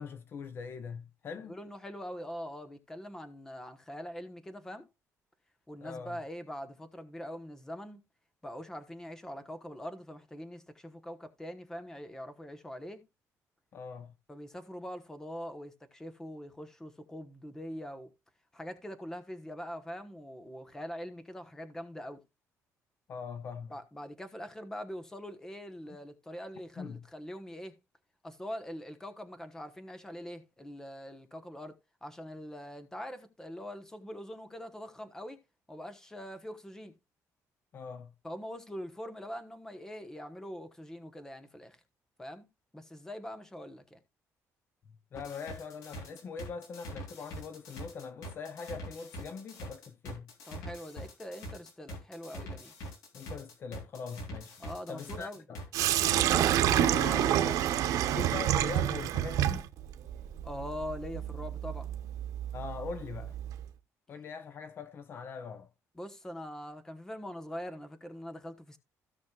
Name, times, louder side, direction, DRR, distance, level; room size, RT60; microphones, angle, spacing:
voice 1, 0.0-1.6 5.8-6.2 13.7-14.1 23.1-23.7 25.9-26.0 26.8-27.0 37.7-38.1 45.1-50.3 53.1-54.5 54.9-55.6 56.7-57.5 58.1-59.6 62.5-63.4 64.1-65.7, left 5 dB, 40° left, 0.8 m, -42 dB
voice 2, 1.5-4.9 5.7-8.0 8.4-13.0 14.3-18.1 18.5-22.2 23.7-27.8 28.2-35.4 35.7-36.9 38.2-41.8 42.2-42.5 42.7-44.0 50.5-52.7 54.6-55.4 56.2-57.6 60.4-61.9 66.0-68.8, equal, 10° left, 1.1 m, -43 dB
sound 1, 45.1-56.3, equal, 85° left, 3.7 m, -44 dB
Sink (filling or washing), 55.7-63.7, right 11 dB, 85° right, 1.0 m, -29 dB
16.5 x 6.2 x 2.4 m
cardioid pair, 170°, 6 cm